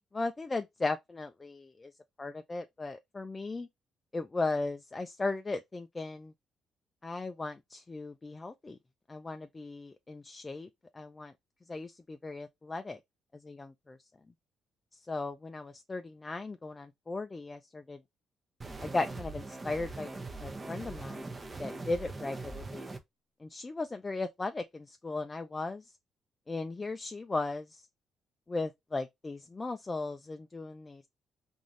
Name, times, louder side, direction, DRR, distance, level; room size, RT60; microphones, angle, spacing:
voice 1, 0.0-1.9 2.2-3.7 4.1-6.3 7.0-8.8 9.1-10.7 10.9-11.3 11.7-13.0 13.4-14.0 15.1-18.0 18.8-20.1 20.4-22.9 23.4-25.8 26.5-27.8 28.5-31.0, left 3 dB, 25° left, 0.4 m, -37 dB
sound 1, 18.6-23.0, right 3 dB, 25° right, 0.7 m, -41 dB
3.8 x 2.6 x 3.1 m
cardioid pair, 90°, 0 cm